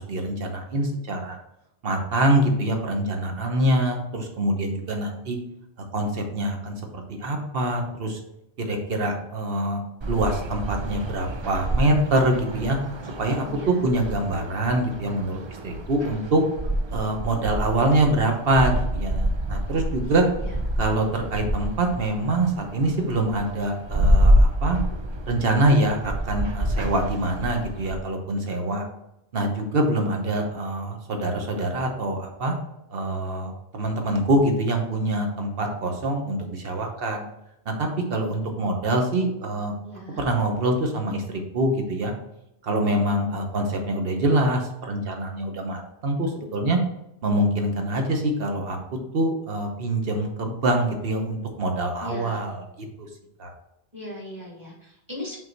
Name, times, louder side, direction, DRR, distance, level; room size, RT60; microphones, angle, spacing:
voice 1, 0.0-1.4 1.8-5.4 5.9-8.2 8.6-9.8 10.1-12.8 13.2-16.4 16.9-20.3 20.8-24.8 25.3-28.8 29.3-32.6 32.9-37.2 37.7-39.7 40.2-42.1 42.6-46.8 47.2-48.8 49.1-52.6 53.0-53.1 53.4-53.5, right 1 dB, 65° right, 3 dB, 1.2 m, -25 dB
sound 1, 10.0-28.0, equal, 45° right, 0.4 m, -27 dB
voice 2, 13.4-13.9 20.4-20.6 39.8-40.2 52.0-52.4 53.9-55.4, left 1 dB, 20° right, -4 dB, 1.9 m, -38 dB
5.6 x 3.9 x 4.5 m, 0.83 s
omnidirectional pair, 1.1 m